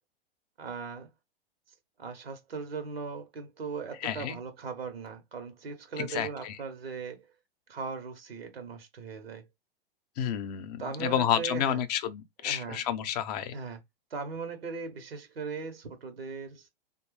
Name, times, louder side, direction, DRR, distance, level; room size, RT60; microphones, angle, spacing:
voice 1, 0.6-1.1 2.0-7.3 7.7-9.5 10.8-11.8 12.4-12.8 13.5-13.8 14.1-16.7, right 5 dB, 80° right, 0.9 m, -38 dB
voice 2, 4.0-4.4 6.0-6.6 10.2-13.5, left 10 dB, 45° left, 0.6 m, -30 dB
3.1 x 2.2 x 3.0 m
figure-of-eight pair, 105°, 29 cm